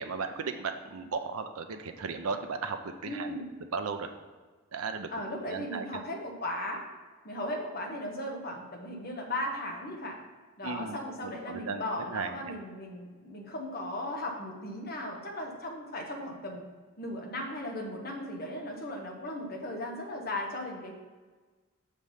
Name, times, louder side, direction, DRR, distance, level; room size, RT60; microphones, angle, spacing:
voice 1, 0.0-3.4 3.7-4.1 4.7-5.1 5.5-5.8 10.6-11.8 12.1-12.5, right 5 dB, 85° right, 6 dB, 0.6 m, -36 dB
voice 2, 3.0-3.5 5.1-6.8 7.2-10.2 10.6-16.6 17.0-20.9, left 1 dB, 45° left, 1 dB, 1.2 m, -37 dB
6.3 x 5.2 x 5.6 m, 1.4 s
head